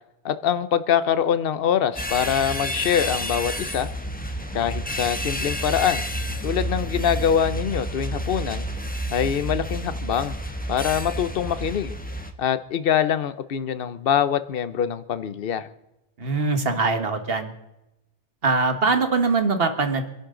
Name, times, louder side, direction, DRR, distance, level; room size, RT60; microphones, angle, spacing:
voice 1, 0.2-3.9 4.5-6.0 6.4-8.7 9.1-10.3 10.7-12.0 12.4-15.7, left 8 dB, 60° left, 13 dB, 0.9 m, -24 dB
sound 1, 1.9-12.3, equal, 10° left, 1.1 m, -30 dB
voice 2, 16.2-17.5 18.4-20.1, right 4 dB, 60° right, 7 dB, 1.7 m, -22 dB
25.5 x 11.0 x 3.8 m, 0.91 s
omnidirectional pair, 1.1 m